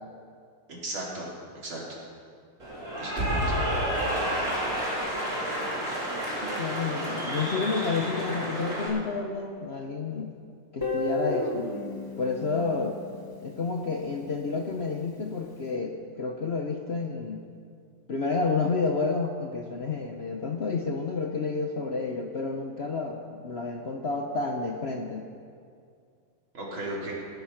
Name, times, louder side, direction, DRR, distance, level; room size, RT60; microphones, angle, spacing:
voice 1, 0.7-1.3 1.6-1.8 3.0-3.6 26.5-27.1, right 1 dB, 75° right, -4 dB, 3.7 m, -35 dB
Cheering / Applause, 2.6-8.9, equal, 35° right, 3.7 m, -30 dB
voice 2, 6.4-10.3 10.7-11.7 12.2-13.0 13.4-17.4 18.1-25.3, left 4 dB, 70° left, 2 dB, 0.6 m, -30 dB
Guitar, 10.8-13.8, left 2 dB, 15° left, 0.8 m, -32 dB
16.5 x 10.5 x 5.8 m, 2.3 s
omnidirectional pair, 2.3 m